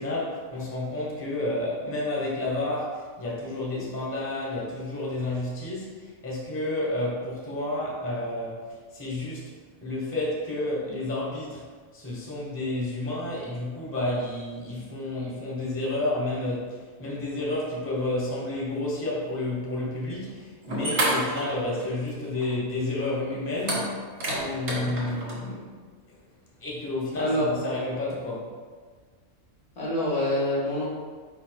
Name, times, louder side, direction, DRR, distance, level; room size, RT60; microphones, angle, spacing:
voice 1, 0.0-9.5 9.8-11.6 11.9-25.8 26.6-28.5, left 2 dB, 10° left, -5 dB, 0.7 m, -30 dB
sound 1, 20.2-20.3 20.6-22.1 22.4-22.5 23.6-25.4, right 1 dB, 85° right, 1.8 m, -29 dB
voice 2, 27.2-27.7 29.8-30.9, left 1 dB, 65° left, -6 dB, 1.6 m, -26 dB
4.9 x 4.6 x 2.2 m, 1.5 s
omnidirectional pair, 1.3 m